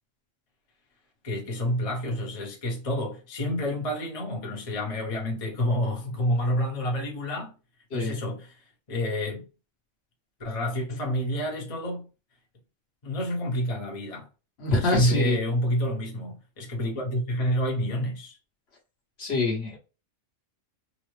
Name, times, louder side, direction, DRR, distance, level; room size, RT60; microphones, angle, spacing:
voice 1, 1.2-7.5 7.9-8.6 8.9-9.4 10.4-12.1 13.0-14.3 14.7-18.4, equal, 30° left, 0.8 m, -28 dB
voice 2, 14.6-15.4 19.2-19.8, left 2 dB, 55° left, 1.1 m, -25 dB
4.0 x 2.0 x 3.1 m
omnidirectional pair, 1.4 m